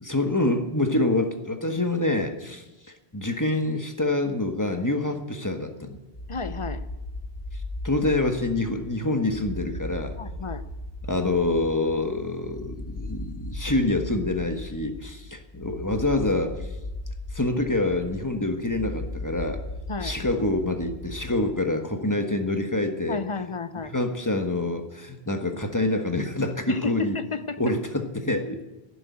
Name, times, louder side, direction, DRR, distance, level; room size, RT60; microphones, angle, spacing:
voice 1, 0.0-2.6 3.1-6.0 7.8-10.1 11.0-16.6 17.3-19.6 20.0-23.2 23.9-27.2 27.6-28.6, left 2 dB, 20° left, 6 dB, 1.3 m, -26 dB
sound 1, 6.1-21.7, left 1 dB, 60° left, 1.8 m, -37 dB
voice 2, 6.3-6.9 10.2-10.6 19.9-20.2 23.1-23.9 26.7-27.7, left 4 dB, 35° left, 12 dB, 0.6 m, -32 dB
11.5 x 11.0 x 9.4 m, 1.1 s
omnidirectional pair, 1.1 m